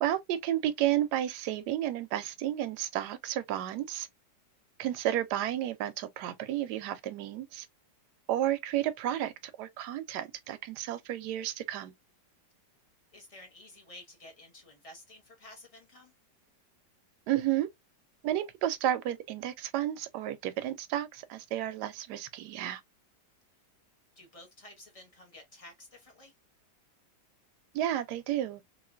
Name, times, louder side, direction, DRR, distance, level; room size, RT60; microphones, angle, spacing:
voice 1, 0.0-4.1 4.8-7.7 8.3-9.3 9.6-11.9 17.3-17.7 18.2-22.8 27.7-28.6, right 12 dB, 75° right, 1.1 m, -32 dB
voice 2, 13.1-16.1 24.2-26.3, left 1 dB, 30° left, 0.7 m, -52 dB
3.1 x 2.7 x 2.3 m
omnidirectional pair, 1.8 m